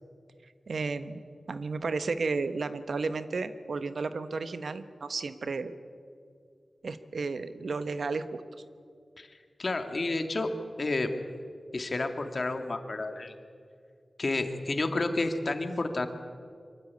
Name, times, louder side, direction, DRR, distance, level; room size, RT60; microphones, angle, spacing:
voice 1, 0.7-1.2 1.5-5.7 6.8-8.4, right 4 dB, 80° right, 11 dB, 1.0 m, -33 dB
voice 2, 9.6-10.5 10.8-11.1 11.7-13.3 14.2-16.1, left 2 dB, 60° left, 6 dB, 2.0 m, -30 dB
24.0 x 12.5 x 9.6 m, 2.3 s
cardioid pair, 45°, 0 cm